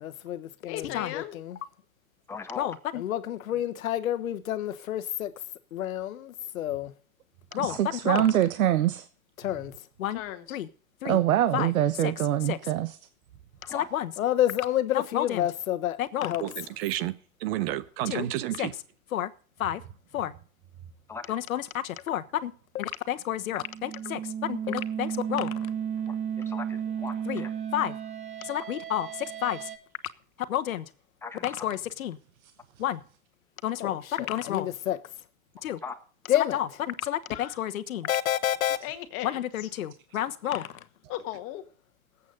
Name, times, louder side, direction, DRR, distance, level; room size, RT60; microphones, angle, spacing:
voice 1, 0.0-1.6 2.6-5.3 5.7-6.9 7.5-7.8 8.0-8.3 9.4-9.7 10.0-10.2 10.5-10.7 11.0-11.2 11.5-11.7 12.0-12.1 12.5-12.6 13.7-16.5 18.1-18.3 18.6-18.7 19.1-19.3 19.6-19.8 20.1-20.3 21.3-25.5 27.3-27.4 27.7-27.9 28.4-29.1 29.4-29.7 30.5-30.8 31.4-32.2 32.8-33.0 33.6-35.0 35.6-35.8 36.3-38.8 39.2-40.7, left 12 dB, 75° left, 1.3 m, -29 dB
voice 2, 0.7-1.4 10.1-10.6 37.3-37.6 38.8-39.7 40.5-40.7 41.1-41.6, left 13 dB, 35° left, 1.8 m, -37 dB
voice 3, 2.3-2.7 7.7-7.8 13.6-13.9 21.1-21.4 26.1-27.5 31.2-31.6 35.8-35.9, left 4 dB, 5° left, 1.5 m, -40 dB
voice 4, 7.5-9.0 11.0-13.0, right 12 dB, 75° right, 1.1 m, -24 dB
voice 5, 16.4-17.1 17.4-18.7, right 14 dB, 45° right, 1.1 m, -30 dB
sound 1, 23.5-29.8, right 8 dB, 15° right, 1.2 m, -34 dB
18.5 x 8.5 x 3.9 m
hypercardioid pair, 145°, 42 cm